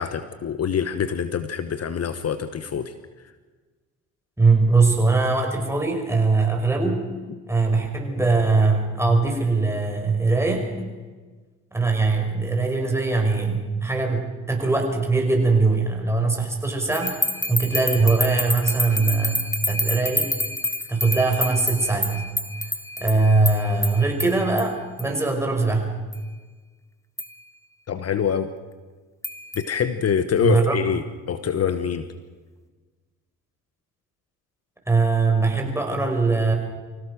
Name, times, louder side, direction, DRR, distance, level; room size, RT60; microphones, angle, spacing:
voice 1, 0.0-2.9 27.9-28.5 29.5-32.1, left 7 dB, 50° left, 11 dB, 1.2 m, -25 dB
voice 2, 4.4-7.0 7.5-10.9 11.7-17.2 17.5-20.3 20.9-22.3 23.0-25.9 30.4-30.8 34.9-36.5, right 3 dB, 10° right, 2 dB, 5.6 m, -21 dB
sound 1, 16.9-24.7 25.0-25.1 26.1-26.2 27.2-27.3 29.2-29.7, left 1 dB, 10° left, 1.7 m, -28 dB
25.0 x 16.5 x 6.4 m, 1.4 s
cardioid pair, 75°, 32 cm